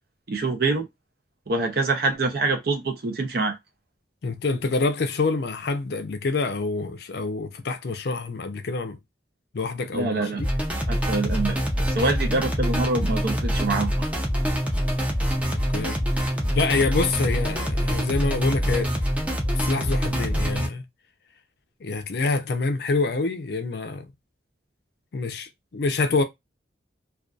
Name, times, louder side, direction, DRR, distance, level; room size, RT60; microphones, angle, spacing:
voice 1, 0.3-0.9 1.5-3.6 9.9-10.4 10.9-13.9, right 3 dB, 55° right, 0.6 m, -25 dB
voice 2, 4.2-9.0 9.5-10.5 15.3-16.0 16.5-18.9 19.5-20.8 21.8-24.0 25.1-26.2, left 3 dB, 60° left, 0.5 m, -26 dB
sound 1, 10.4-20.7, equal, 10° right, 0.5 m, -25 dB
2.5 x 2.3 x 2.3 m
head